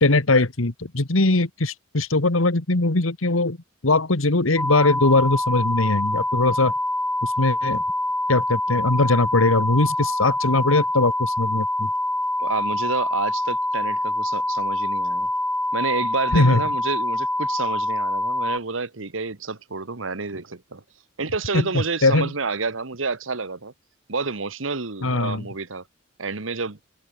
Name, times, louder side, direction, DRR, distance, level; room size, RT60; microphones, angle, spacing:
voice 1, 0.0-3.6 3.8-6.7 7.2-7.8 8.3-11.9 16.3-16.6 21.5-22.3 25.0-25.5, left 2 dB, 85° left, 1.9 m, -20 dB
sound 1, 4.6-18.6, left 1 dB, 5° left, 1.6 m, -25 dB
voice 2, 12.4-15.3 15.7-20.8 21.2-23.7 24.1-25.8 26.2-26.8, right 4 dB, 75° right, 1.5 m, -29 dB
head